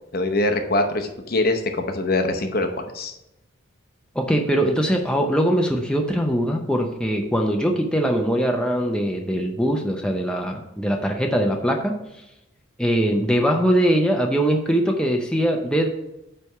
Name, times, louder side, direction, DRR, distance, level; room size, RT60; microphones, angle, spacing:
voice 1, 0.1-2.7 2.9-3.1, left 2 dB, 45° left, 6 dB, 0.8 m, -23 dB
voice 2, 4.1-11.9 12.8-15.9, equal, 5° left, 2 dB, 0.6 m, -21 dB
9.1 x 3.4 x 5.7 m, 0.87 s
head